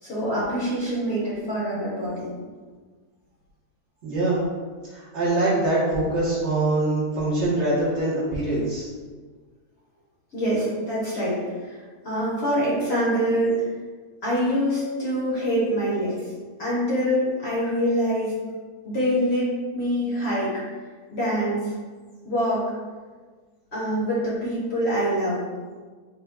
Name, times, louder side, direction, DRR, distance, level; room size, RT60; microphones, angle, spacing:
voice 1, 0.0-2.3 10.3-11.4 11.6-13.6 14.2-16.2 16.6-18.3 18.8-20.5 21.1-21.7 22.2-22.7 23.7-25.4, equal, 50° left, -8 dB, 1.0 m, -25 dB
voice 2, 4.0-4.4 4.9-8.9, right 2 dB, 50° right, -8 dB, 1.1 m, -23 dB
3.6 x 2.2 x 3.5 m, 1.5 s
omnidirectional pair, 1.7 m